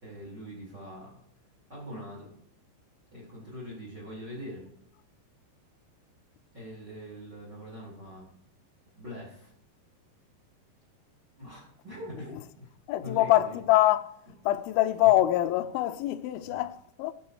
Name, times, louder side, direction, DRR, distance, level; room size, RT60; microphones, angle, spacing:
voice 1, 0.0-1.2 1.7-2.3 3.1-4.7 6.5-8.3 9.0-9.5 11.4-12.7 13.0-13.6 15.0-15.1 16.4-16.6, equal, 25° right, 4.4 m, -43 dB
voice 2, 12.9-14.2 14.4-17.1, left 15 dB, 90° left, 2.1 m, -24 dB
18.0 x 6.9 x 4.9 m
omnidirectional pair, 5.1 m